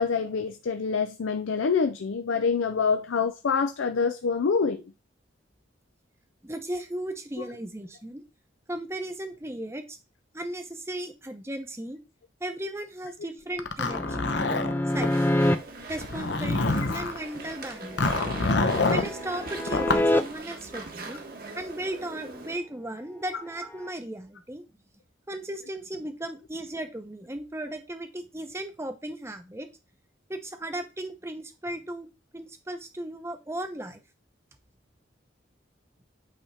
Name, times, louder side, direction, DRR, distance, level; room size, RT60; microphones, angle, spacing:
voice 1, 0.0-4.8, left 5 dB, 85° left, 0.5 m, -26 dB
voice 2, 6.4-8.2 8.7-10.0 10.3-12.0 12.4-14.3 14.9-15.4 15.9-18.0 18.9-21.2 21.6-24.6 25.3-29.7 30.3-32.1 32.3-34.0, right 1 dB, 15° right, 0.8 m, -36 dB
Zipper (clothing), 13.6-15.1 15.9-17.2 18.0-19.1 19.7-20.1, left 3 dB, 65° left, 0.8 m, -26 dB
sound 1, 13.8-15.6 18.3-20.2 23.6-23.9, left 1 dB, 10° left, 0.4 m, -27 dB
Walk footsteps / Chatter / Squeak, 14.9-22.6, right 3 dB, 50° right, 1.3 m, -40 dB
8.5 x 3.5 x 4.2 m
head